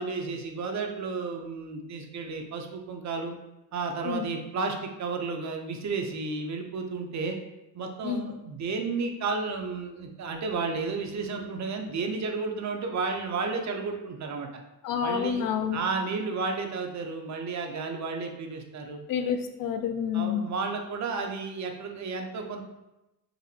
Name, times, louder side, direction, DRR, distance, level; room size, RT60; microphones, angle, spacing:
voice 1, 0.0-3.3 3.7-7.4 7.7-14.5 15.0-15.4 15.7-19.0 20.1-22.6, right 4 dB, 45° right, 4 dB, 0.5 m, -32 dB
voice 2, 14.8-15.8 19.1-20.4, left 8 dB, 55° left, 7 dB, 0.5 m, -28 dB
4.0 x 2.5 x 2.7 m, 0.95 s
cardioid pair, 110°, 42 cm